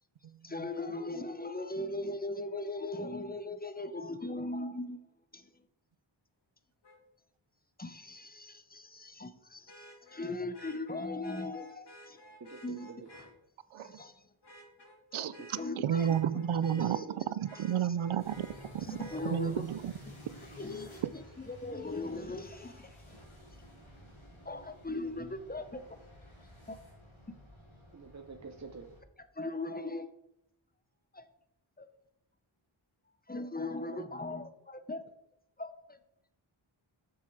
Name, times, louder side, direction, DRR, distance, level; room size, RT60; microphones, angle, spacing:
voice 1, 0.4-5.0 5.3-5.5 7.8-12.3 12.6-12.9 13.8-14.3 15.1-15.3 15.6-16.1 16.8-17.1 17.5-17.6 18.8-19.6 20.1-20.2 20.5-23.0 24.4-26.0 26.7-26.8 27.3-27.4 29.2-30.1 31.1-31.3 31.8-31.9 33.3-35.1 35.6-36.0, left 2 dB, 20° left, 10 dB, 0.8 m, -39 dB
Vehicle horn car horn honking, 6.8-7.0 9.7-13.3 13.8-14.1 14.4-17.1 17.4-19.2 21.0-21.1, equal, 55° left, 2.2 m, -54 dB
voice 2, 12.4-13.0 15.2-15.5 16.6-17.2 27.9-28.9 33.9-34.0, right 5 dB, 35° right, 6 dB, 0.8 m, -44 dB
voice 3, 15.1-17.0 17.4-18.5 18.7-18.9 19.2-19.9, right 9 dB, 75° right, 17 dB, 0.6 m, -31 dB
sound 1, 18.2-29.0, left 1 dB, 75° left, 2.8 m, -52 dB
7.3 x 6.4 x 4.7 m, 0.79 s
wide cardioid pair, 45°, 49 cm